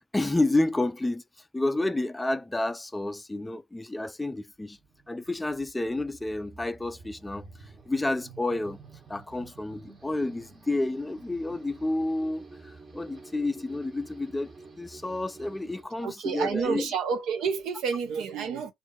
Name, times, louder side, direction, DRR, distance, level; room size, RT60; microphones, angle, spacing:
voice 1, 0.1-1.2 1.5-4.8 5.1-7.5 7.9-8.8 9.1-14.5 14.8-16.9, left 2 dB, 15° left, 0.3 m, -30 dB
sound 1, 4.5-15.8, right 4 dB, 40° right, 1.3 m, -50 dB
voice 2, 16.0-18.7, right 6 dB, 85° right, 0.8 m, -29 dB
2.8 x 2.5 x 2.7 m
cardioid pair, 90°, 0 cm